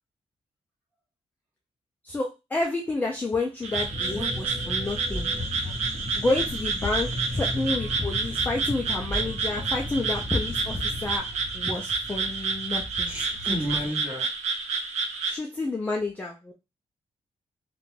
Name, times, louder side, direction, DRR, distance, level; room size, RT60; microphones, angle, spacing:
voice 1, 2.0-5.3 6.2-11.2 11.5-13.1 15.2-16.5, left 2 dB, 15° left, 0 dB, 0.4 m, -29 dB
Frog, 3.6-15.4, right 4 dB, 90° right, 0.5 m, -30 dB
sound 1, 3.7-11.2, left 1 dB, 30° right, 1.4 m, -35 dB
sound 2, 4.5-13.9, right 1 dB, 35° left, 1.0 m, -45 dB
voice 2, 13.0-14.3, equal, 10° right, -4 dB, 1.2 m, -32 dB
2.4 x 2.2 x 3.1 m, 0.25 s
wide cardioid pair, 170°, 11 cm